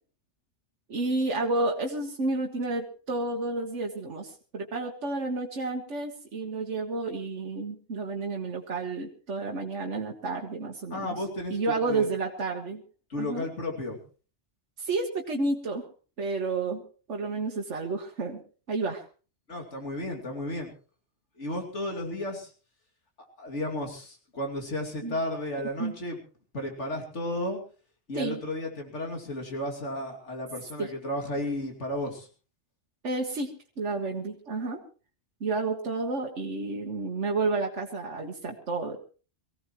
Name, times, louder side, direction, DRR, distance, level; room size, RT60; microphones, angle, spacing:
voice 1, 0.9-11.2 11.5-12.8 13.2-13.4 14.8-15.9 16.2-16.8 17.1-18.4 18.7-19.0 25.0-25.2 25.8-25.9 28.1-28.4 30.8-30.9 33.0-34.8 35.4-39.0, right 3 dB, 90° right, 2 dB, 1.7 m, -30 dB
voice 2, 10.9-12.1 13.1-14.0 19.5-20.7 21.4-22.5 23.4-26.2 26.5-27.6 28.1-32.3, left 1 dB, 85° left, 2 dB, 2.9 m, -33 dB
23.5 x 16.0 x 3.1 m, 0.36 s
omnidirectional pair, 1.2 m